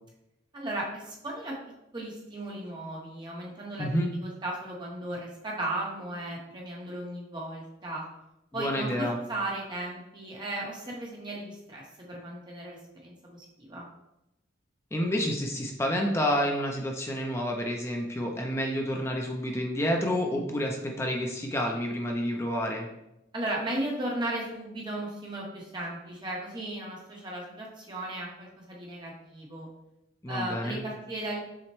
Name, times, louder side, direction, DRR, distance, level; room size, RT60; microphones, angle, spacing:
voice 1, 0.5-1.6 1.9-4.0 4.2-8.1 8.5-13.9 23.3-29.7 30.3-31.4, right 1 dB, 25° right, -3 dB, 0.8 m, -36 dB
voice 2, 3.8-4.1 8.5-9.2 14.9-22.9 30.2-30.8, equal, 15° left, 1 dB, 0.4 m, -29 dB
5.7 x 2.1 x 3.0 m, 0.88 s
head